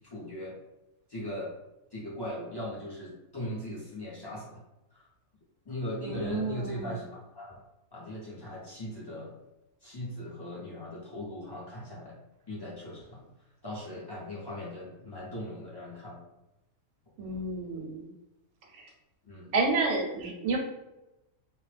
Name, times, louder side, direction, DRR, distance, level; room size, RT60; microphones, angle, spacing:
voice 1, 0.1-0.6 1.1-1.5 1.9-4.6 4.9-5.1 5.6-7.6 7.9-9.3 9.8-12.2 12.5-13.3 13.6-16.2 19.2-19.5, left 1 dB, 35° left, -7 dB, 0.3 m, -39 dB
voice 2, 6.0-6.9 17.2-18.1 18.7-18.8 19.5-20.6, right 3 dB, 65° right, 2 dB, 0.8 m, -30 dB
2.4 x 2.0 x 3.2 m, 0.94 s
omnidirectional pair, 1.5 m